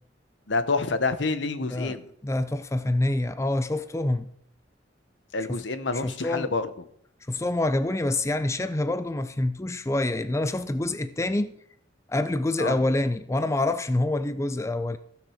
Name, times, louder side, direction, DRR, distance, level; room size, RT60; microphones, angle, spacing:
voice 1, 0.5-2.1 5.3-6.7 12.6-12.8, left 3 dB, 70° left, 1.0 m, -27 dB
voice 2, 2.2-4.3 5.5-5.6 5.9-6.5 7.3-11.6 12.1-15.0, left 2 dB, 15° left, 0.4 m, -26 dB
15.0 x 6.2 x 6.4 m
head